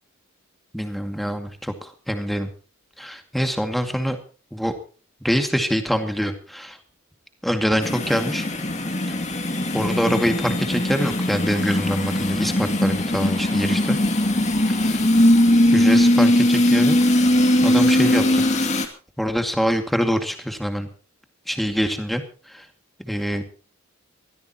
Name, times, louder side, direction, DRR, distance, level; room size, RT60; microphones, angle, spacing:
voice 1, 0.7-2.5 3.0-4.2 4.5-4.7 5.2-6.8 7.4-8.5 9.7-14.0 14.7-15.1 15.7-17.0 17.6-18.5 19.2-20.9 21.5-22.7 23.0-23.5, equal, ahead, 6 dB, 2.2 m, -25 dB
sound 1, 7.8-18.9, left 1 dB, 30° left, 2.4 m, -19 dB
24.0 x 16.0 x 3.0 m, 0.37 s
head